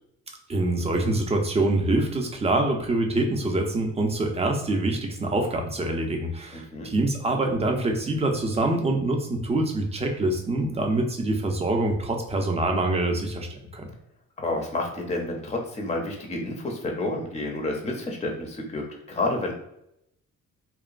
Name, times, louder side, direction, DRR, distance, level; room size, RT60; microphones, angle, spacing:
voice 1, 0.5-13.9, right 2 dB, 20° right, 3 dB, 0.5 m, -25 dB
voice 2, 6.5-6.9 10.7-11.0 14.4-19.5, left 2 dB, 20° left, 1 dB, 0.6 m, -30 dB
2.9 x 2.1 x 2.4 m, 0.79 s
cardioid pair, 90°, 30 cm